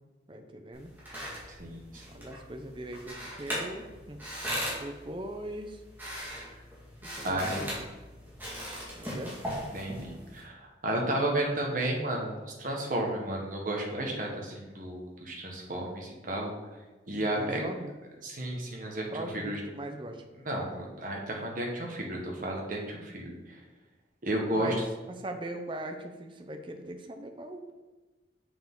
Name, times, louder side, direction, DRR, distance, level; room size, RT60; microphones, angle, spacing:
voice 1, 0.3-0.9 2.1-4.2 4.8-5.8 7.0-7.9 8.9-9.4 17.1-17.9 19.1-20.3 24.5-24.8 25.1-27.7, right 1 dB, 25° right, 5 dB, 0.6 m, -40 dB
sound 1, 0.7-10.4, equal, 10° right, 2.0 m, -39 dB
voice 2, 1.5-2.2 6.5-6.6 7.2-7.6 9.7-16.8 17.1-17.6 18.2-19.1 19.3-19.6 20.4-23.6 24.2-24.7, right 1 dB, 45° right, 0 dB, 1.4 m, -33 dB
6.9 x 5.8 x 3.8 m, 1.2 s
head